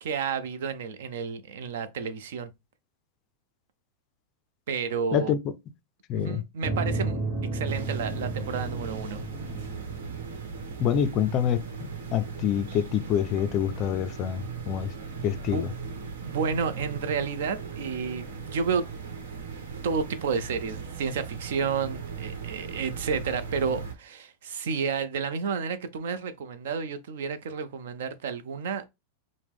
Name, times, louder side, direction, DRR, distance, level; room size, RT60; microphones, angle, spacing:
voice 1, 0.0-2.5 4.7-5.3 6.1-9.2 15.5-15.6 16.2-18.9 19.4-19.5 19.8-28.9, right 5 dB, 70° right, 0.6 m, -31 dB
voice 2, 6.1-6.4 10.8-14.9 15.2-15.7, left 9 dB, 30° left, 0.4 m, -27 dB
sound 1, 6.6-11.5, right 2 dB, 15° right, 1.7 m, -33 dB
sound 2, 7.6-23.9, right 5 dB, 85° right, 1.1 m, -38 dB
4.8 x 2.1 x 3.5 m
supercardioid pair, 170°, 0 cm